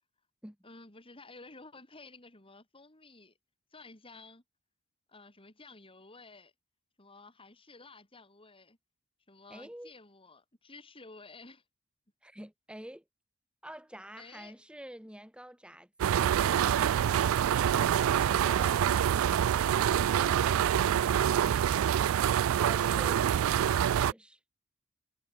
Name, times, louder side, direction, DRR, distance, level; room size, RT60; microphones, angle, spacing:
voice 1, 0.6-3.3 3.7-4.4 5.1-6.5 7.0-8.8 9.3-11.6 14.2-14.6 17.1-19.6 23.4-23.6, left 3 dB, 25° left, 3.8 m, -53 dB
voice 2, 9.5-9.9 12.2-13.0 13.6-16.4 22.6-24.4, equal, 5° right, 3.0 m, -48 dB
sound 1, 16.0-24.1, right 9 dB, 85° right, 0.3 m, -26 dB
head